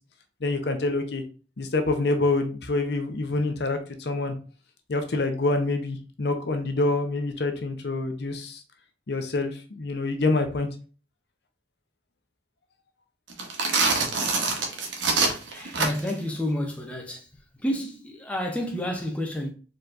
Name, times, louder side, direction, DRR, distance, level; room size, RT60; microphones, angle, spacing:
voice 1, 0.4-1.2 1.6-4.3 4.9-8.6 9.1-10.7, left 2 dB, 60° left, 0.7 m, -26 dB
sound 1, 13.3-16.2, right 3 dB, 85° right, 1.0 m, -25 dB
voice 2, 15.5-17.3 17.6-19.5, left 1 dB, 5° left, 0.6 m, -30 dB
4.6 x 3.9 x 2.5 m
head